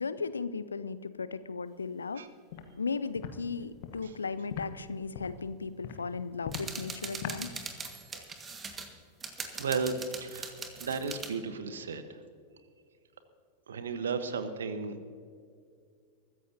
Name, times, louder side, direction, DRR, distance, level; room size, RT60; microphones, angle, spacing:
voice 1, 0.0-2.2 2.8-7.5, left 4 dB, 75° left, 15 dB, 0.5 m, -36 dB
Walk footsteps, 2.5-2.7 3.1-3.3 3.8-4.0 4.5-4.6 5.1-5.4 5.8-6.0 6.4-6.7 7.2-7.4, left 11 dB, 50° left, 1.2 m, -38 dB
sound 1, 6.5-8.9 9.2-11.3, right 4 dB, 20° right, 1.7 m, -41 dB
voice 2, 9.5-10.5 10.8-12.2 13.7-14.9, right 5 dB, 65° right, 10 dB, 1.2 m, -34 dB
23.5 x 14.0 x 2.8 m, 2.2 s
figure-of-eight pair, 90°, 0 cm